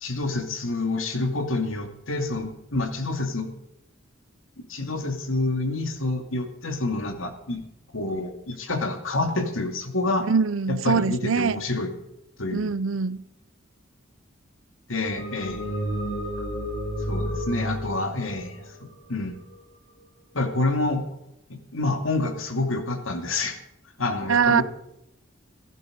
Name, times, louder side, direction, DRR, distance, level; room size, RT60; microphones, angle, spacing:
voice 1, 0.0-3.5 4.7-7.6 7.9-10.3 10.7-11.9 12.4-12.7 14.9-15.7 17.1-18.6 19.1-19.4 20.3-21.1 21.5-23.6 24.0-24.6, left 2 dB, 80° left, 2.5 m, -28 dB
voice 2, 10.3-11.6 12.5-13.2 24.3-24.6, right 5 dB, 75° right, 0.7 m, -23 dB
sound 1, 15.2-19.5, equal, 60° left, 6.2 m, -31 dB
16.5 x 14.5 x 5.2 m
head